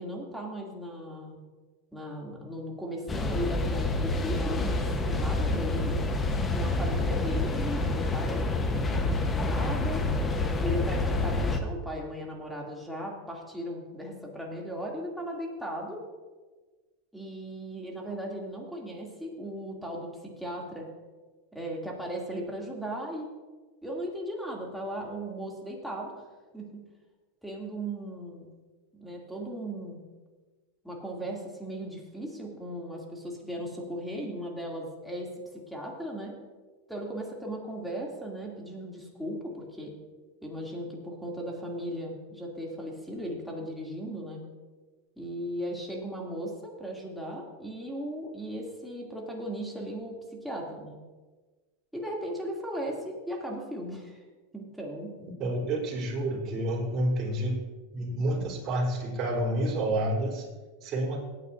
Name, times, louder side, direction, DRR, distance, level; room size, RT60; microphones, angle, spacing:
voice 1, 0.0-1.4 1.9-6.0 6.5-10.0 10.6-16.0 17.1-20.9 21.5-23.3 23.8-26.3 26.5-26.9 27.4-28.5 28.9-30.1 30.8-36.4 36.9-39.9 40.4-44.4 45.2-51.0 51.9-54.2 54.5-55.2, equal, ahead, -3 dB, 2.9 m, -37 dB
sound 1, 3.1-11.6, left 2 dB, 20° left, 1.2 m, -28 dB
voice 2, 55.4-57.6 57.9-60.4 60.8-61.2, right 1 dB, 40° right, -2 dB, 4.1 m, -29 dB
18.0 x 9.4 x 2.8 m, 1.3 s
hypercardioid pair, 100°, 0 cm